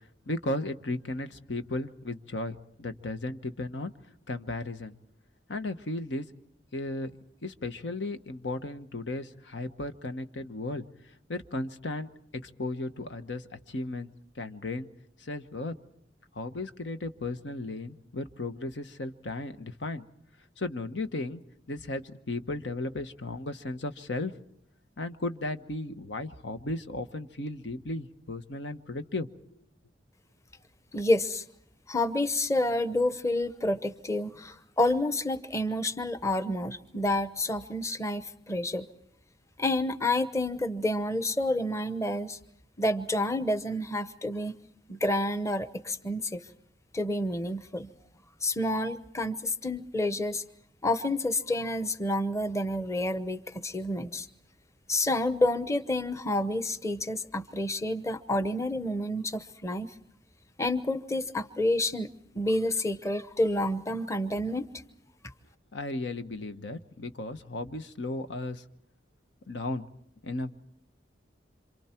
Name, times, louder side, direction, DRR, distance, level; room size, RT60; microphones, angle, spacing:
voice 1, 0.3-3.9 4.3-4.9 5.5-6.2 6.7-7.1 7.4-10.8 11.3-14.1 14.4-14.9 15.2-15.7 16.3-20.1 20.6-21.4 21.7-24.4 25.0-29.3 65.7-68.6 69.5-69.9 70.2-70.5, left 2 dB, 90° left, 9 dB, 1.2 m, -35 dB
voice 2, 30.9-31.4 31.9-38.9 39.6-42.4 42.8-44.5 44.9-46.4 46.9-47.9 48.4-50.4 50.8-54.3 54.9-59.9 60.6-62.1 62.3-64.7 65.2-65.3, left 1 dB, 15° left, 11 dB, 0.9 m, -29 dB
27.5 x 27.0 x 4.5 m, 0.74 s
head